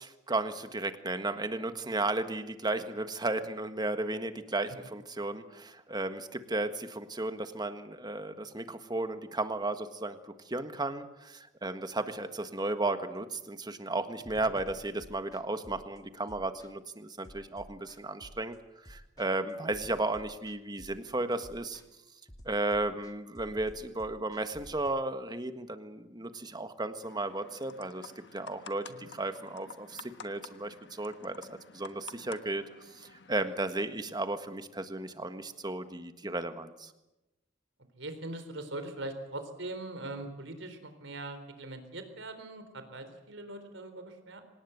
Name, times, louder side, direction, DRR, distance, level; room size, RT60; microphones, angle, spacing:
voice 1, 0.0-10.2 10.4-18.6 18.8-21.8 22.4-32.7 32.9-36.9, right 2 dB, 20° right, 9 dB, 1.6 m, -34 dB
sound 1, 14.2-24.9, equal, 20° left, 1.7 m, -53 dB
sound 2, 27.0-33.5, left 5 dB, 65° left, 1.4 m, -51 dB
voice 2, 38.0-44.4, right 2 dB, 90° right, 8 dB, 4.0 m, -41 dB
26.0 x 19.0 x 8.2 m, 0.95 s
head